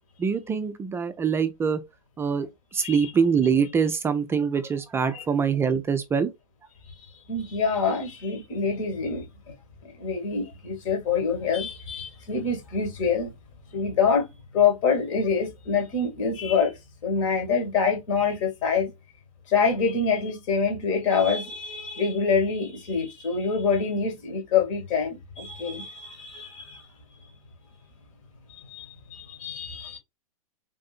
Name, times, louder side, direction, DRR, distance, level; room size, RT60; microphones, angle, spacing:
voice 1, 0.2-1.8 2.2-2.5 2.7-6.3, right 6 dB, 15° right, 0.3 m, -24 dB
voice 2, 2.8-3.1 5.1-5.2 7.3-9.3 10.0-13.3 13.7-14.2 14.5-16.7 17.0-18.9 19.5-26.9 28.5-30.0, left 5 dB, 55° left, 1.6 m, -26 dB
3.7 x 2.6 x 2.4 m
hypercardioid pair, 115°, 19 cm